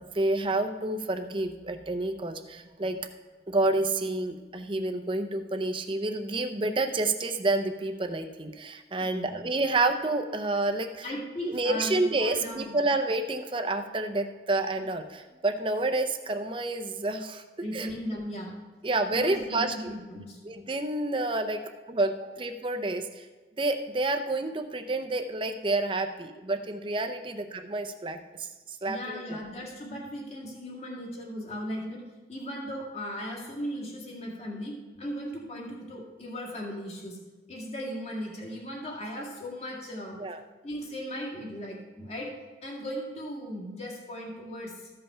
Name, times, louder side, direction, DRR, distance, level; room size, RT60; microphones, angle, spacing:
voice 1, 0.0-3.0 3.5-11.1 11.5-17.4 17.7-17.9 18.8-19.9 20.4-21.6 21.9-23.3 23.6-29.4 40.2-40.4, right 2 dB, 25° right, 6 dB, 0.6 m, -29 dB
voice 2, 9.0-9.5 11.0-12.8 17.6-18.5 19.1-20.4 21.5-21.7 28.9-32.0 32.3-37.2 37.5-40.2 40.6-42.3 42.6-44.9, equal, 35° left, -1 dB, 1.8 m, -37 dB
13.5 x 5.5 x 5.5 m, 1.3 s
head